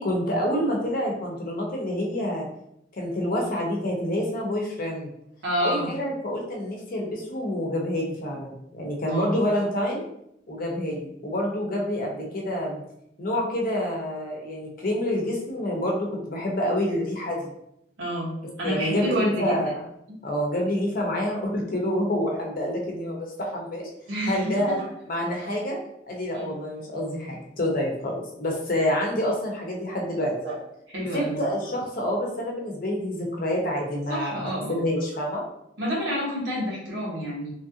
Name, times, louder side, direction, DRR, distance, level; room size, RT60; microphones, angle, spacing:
voice 1, 0.0-2.4 2.9-5.1 5.6-10.0 10.5-12.8 13.2-17.5 18.6-19.8 20.2-23.9 24.3-24.8 25.1-25.8 26.1-30.3 31.1-35.4, left 1 dB, 50° left, -1 dB, 0.7 m, -27 dB
voice 2, 5.4-5.9 9.1-9.3 18.0-19.6 24.1-24.9 26.3-26.5 30.4-30.5 30.9-31.4 34.1-34.8 35.8-37.5, equal, 90° right, -5 dB, 1.3 m, -29 dB
3.2 x 2.5 x 2.7 m, 0.77 s
head